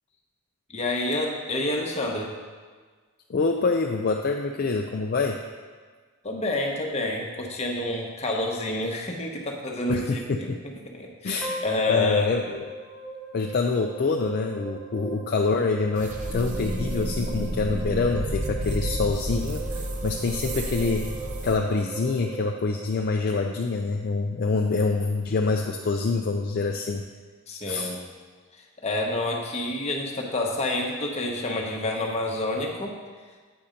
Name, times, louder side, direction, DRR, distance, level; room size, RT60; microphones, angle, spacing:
voice 1, 0.7-2.3 6.2-12.3 27.5-28.0 28.8-33.0, left 2 dB, 30° left, 0 dB, 0.9 m, -28 dB
voice 2, 3.3-5.4 9.9-10.6 11.2-11.6 11.9-12.7 13.3-21.1 21.4-27.1 27.7-27.9, left 4 dB, 45° left, 2 dB, 0.4 m, -26 dB
sound 1, 11.4-23.6, right 4 dB, 5° right, 0.8 m, -39 dB
sound 2, 16.0-21.6, equal, 35° right, 0.6 m, -31 dB
8.6 x 4.3 x 5.1 m, 1.5 s
head